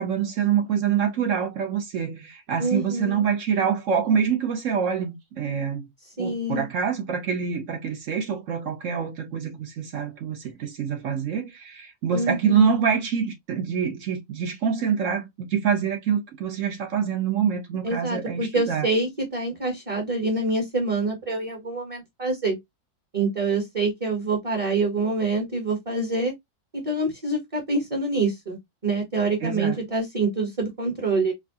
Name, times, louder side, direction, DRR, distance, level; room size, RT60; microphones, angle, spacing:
voice 1, 0.0-5.9 6.2-18.9 29.4-29.8, right 7 dB, 60° right, 1.0 m, -25 dB
voice 2, 2.6-3.2 6.2-6.7 12.1-12.8 17.8-22.6 23.1-26.3 26.7-28.6 28.8-31.3, right 3 dB, 25° right, 1.0 m, -26 dB
4.5 x 2.3 x 2.6 m
omnidirectional pair, 1.6 m